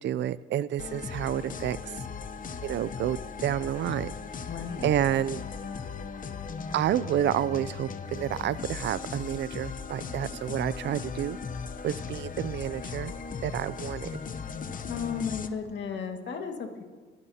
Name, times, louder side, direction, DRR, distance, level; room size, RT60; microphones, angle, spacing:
voice 1, 0.0-1.8 2.6-4.1 4.8-5.4 6.7-11.4 11.8-13.1 13.4-14.1, right 11 dB, 65° right, 18 dB, 0.4 m, -29 dB
sound 1, 0.8-15.5, left 5 dB, 45° left, 0.8 m, -38 dB
voice 2, 4.5-5.0 14.9-16.8, left 6 dB, 65° left, 4 dB, 1.8 m, -34 dB
25.0 x 12.0 x 2.8 m, 1.5 s
cardioid pair, 90°, 20 cm